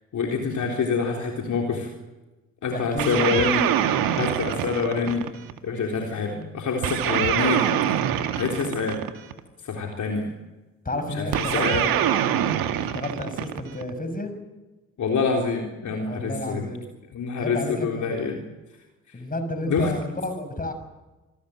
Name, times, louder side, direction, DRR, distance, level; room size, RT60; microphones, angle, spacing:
voice 1, 0.1-1.9 2.6-3.6 4.1-5.3 5.6-7.6 8.3-9.0 9.6-10.3 11.1-11.9 15.0-16.7 17.1-18.4 19.1-19.2 19.6-19.9, left 5 dB, 45° left, 1 dB, 3.8 m, -26 dB
voice 2, 2.7-3.5 10.8-12.1 12.9-14.3 16.0-16.9 17.4-18.0 19.1-20.7, left 1 dB, 20° left, 8 dB, 6.2 m, -31 dB
sound 1, 3.0-5.6 6.8-9.4 11.3-13.9, right 10 dB, 55° right, 2.1 m, -24 dB
27.0 x 19.5 x 7.9 m, 1.1 s
figure-of-eight pair, 50°, 42 cm